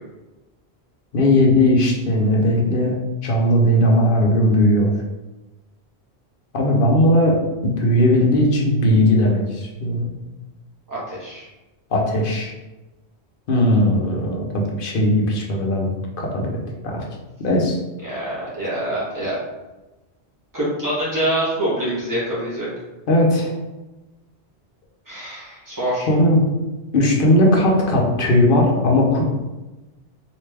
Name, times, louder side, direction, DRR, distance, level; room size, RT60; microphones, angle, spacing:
voice 1, 1.1-4.9 6.5-7.4 7.6-10.1 11.9-12.5 13.5-15.9 16.2-16.5 16.8-17.0 17.4-17.8 23.1-23.5 26.1-26.4 26.9-29.2, left 1 dB, 60° left, -1 dB, 0.8 m, -18 dB
voice 2, 10.9-11.5 18.0-19.4 20.5-22.7 25.1-26.1, right 1 dB, 20° right, -8 dB, 1.4 m, -25 dB
3.3 x 2.6 x 3.3 m, 1.1 s
omnidirectional pair, 1.1 m